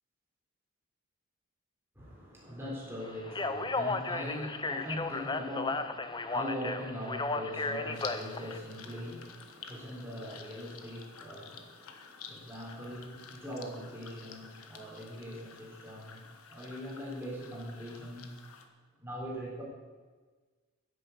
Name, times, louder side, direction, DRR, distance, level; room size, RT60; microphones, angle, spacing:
voice 1, 2.0-18.4 19.0-19.6, equal, 10° right, -5 dB, 4.0 m, -41 dB
Speech, 3.2-8.6, left 3 dB, 20° left, 0.6 m, -34 dB
sound 1, 7.9-18.7, left 6 dB, 80° left, 1.4 m, -50 dB
10.5 x 10.0 x 8.2 m, 1.4 s
head